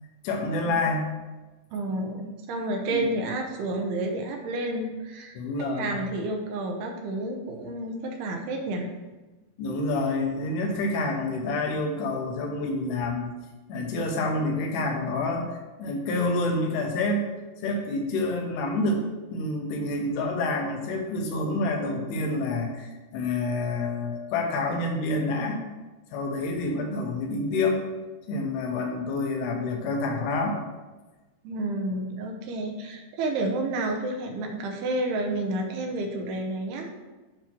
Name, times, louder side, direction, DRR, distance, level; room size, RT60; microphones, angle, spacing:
voice 1, 0.2-1.1 2.9-3.1 5.4-6.0 9.6-13.3 13.7-17.3 17.6-19.0 19.3-25.6 26.1-27.8 28.3-30.6, left 2 dB, 85° left, 2 dB, 3.0 m, -28 dB
voice 2, 1.7-8.9 31.4-36.9, right 2 dB, 85° right, 2 dB, 2.8 m, -30 dB
8.5 x 3.0 x 5.9 m, 1.2 s
omnidirectional pair, 4.6 m